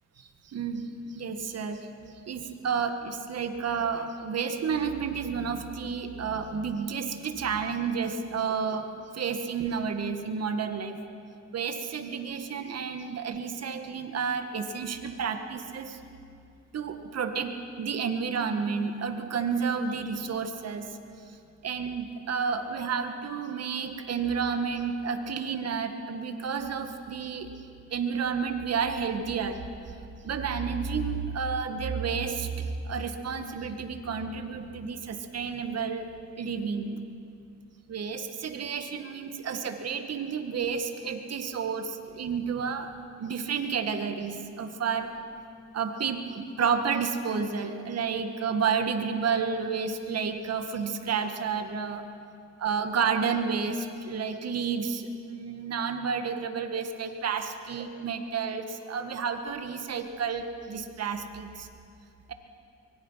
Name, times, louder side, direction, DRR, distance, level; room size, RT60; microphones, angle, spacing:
voice 1, 0.4-1.9 2.3-11.0 11.5-16.0 16.7-20.9 21.6-27.5 27.9-29.6 30.2-37.0 37.9-42.9 43.2-45.1 45.7-52.1 52.6-61.7, right 6 dB, 55° right, 7 dB, 2.0 m, -31 dB
24.0 x 23.5 x 5.9 m, 2.4 s
cardioid pair, 90°, 30 cm